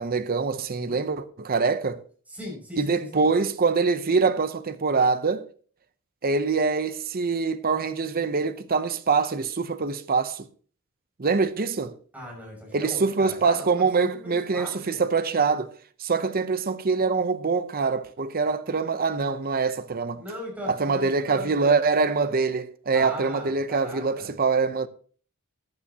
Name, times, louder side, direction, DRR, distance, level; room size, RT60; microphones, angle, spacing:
voice 1, 0.0-2.0 2.8-5.4 6.2-10.5 11.2-12.0 12.7-15.7 16.0-20.2 20.7-24.9, right 4 dB, 45° right, 0.7 m, -24 dB
voice 2, 0.7-1.0 2.3-3.3 12.1-15.0 20.2-21.8 22.9-24.3, left 1 dB, 5° right, 6.3 m, -39 dB
14.5 x 9.6 x 2.9 m
head